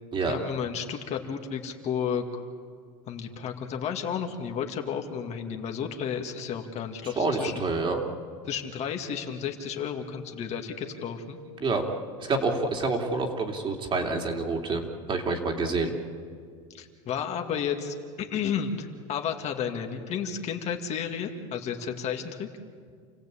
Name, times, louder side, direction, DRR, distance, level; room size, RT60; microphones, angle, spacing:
voice 1, 0.2-2.4 3.1-7.6 8.5-11.4 16.7-22.5, left 7 dB, 40° left, 3 dB, 2.3 m, -32 dB
voice 2, 7.2-8.0 11.6-11.8 12.2-14.8 15.1-16.0, right 3 dB, 30° right, 2 dB, 3.3 m, -27 dB
29.0 x 16.0 x 8.7 m, 2.1 s
supercardioid pair, 115°, 17 cm